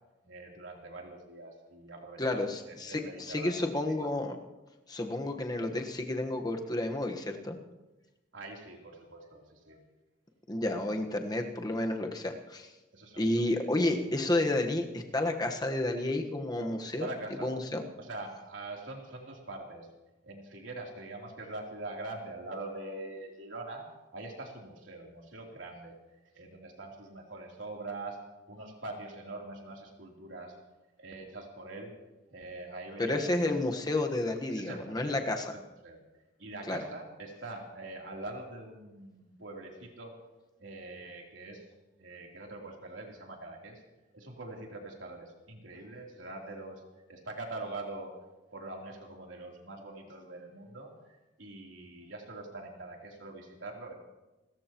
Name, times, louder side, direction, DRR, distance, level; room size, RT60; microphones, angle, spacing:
voice 1, 0.2-3.6 8.3-9.8 12.9-13.5 17.0-17.5 18.0-19.9 20.2-23.8 24.1-25.9 26.3-28.2 28.5-30.5 31.0-31.9 32.3-33.2 34.5-35.2 35.8-36.0 36.4-40.2 40.6-41.6 42.0-43.8 44.1-46.8 47.1-48.1 48.5-53.9, right 2 dB, 90° right, 0 dB, 3.4 m, -43 dB
voice 2, 2.2-4.4 4.9-7.6 10.5-12.7 13.2-17.1 17.4-17.8 33.0-35.4 36.7-36.8, left 1 dB, 20° left, 3 dB, 1.3 m, -31 dB
30.0 x 14.0 x 3.0 m, 1.1 s
head